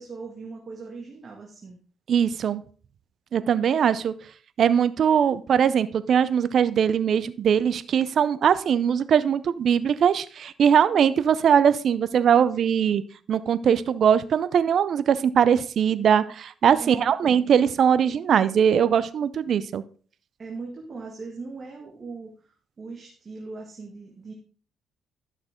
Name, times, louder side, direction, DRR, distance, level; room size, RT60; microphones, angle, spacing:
voice 1, 0.0-1.8 16.8-17.5 20.4-22.5 22.8-24.3, right 4 dB, 40° right, 0 dB, 1.8 m, -39 dB
voice 2, 2.1-2.6 3.3-4.1 4.6-13.0 13.3-19.8, right 8 dB, 60° right, 15 dB, 0.6 m, -21 dB
11.5 x 6.5 x 3.7 m, 0.42 s
cardioid pair, 90°, 0 cm